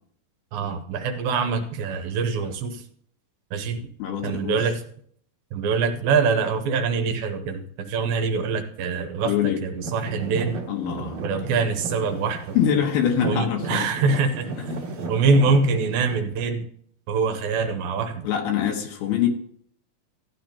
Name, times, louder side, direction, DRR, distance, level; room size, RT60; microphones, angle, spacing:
voice 1, 0.5-2.8 3.5-3.9 4.2-4.8 5.5-9.3 9.6-10.6 11.2-12.6 13.2-14.7 15.1-16.7 17.1-18.3, right 4 dB, 75° right, 7 dB, 2.4 m, -24 dB
voice 2, 4.0-4.7 9.2-9.6 10.7-11.2 12.5-13.9 14.6-14.8 18.2-19.3, left 9 dB, 80° left, 1 dB, 3.1 m, -24 dB
Traffic noise roadway noise / Engine, 9.8-16.2, right 3 dB, 55° right, 2.9 m, -34 dB
15.0 x 10.0 x 2.9 m, 0.62 s
omnidirectional pair, 4.5 m